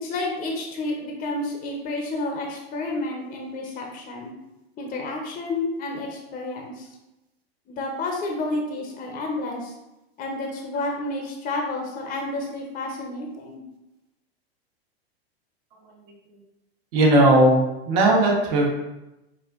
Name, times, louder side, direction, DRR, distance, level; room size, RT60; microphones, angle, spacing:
voice 1, 0.0-4.3 4.8-6.9 7.7-9.7 10.2-13.6, left 2 dB, 30° left, 1 dB, 0.7 m, -30 dB
voice 2, 16.9-18.7, right 1 dB, 55° right, -1 dB, 1.2 m, -17 dB
5.4 x 2.4 x 2.4 m, 0.96 s
hypercardioid pair, 110°, 31 cm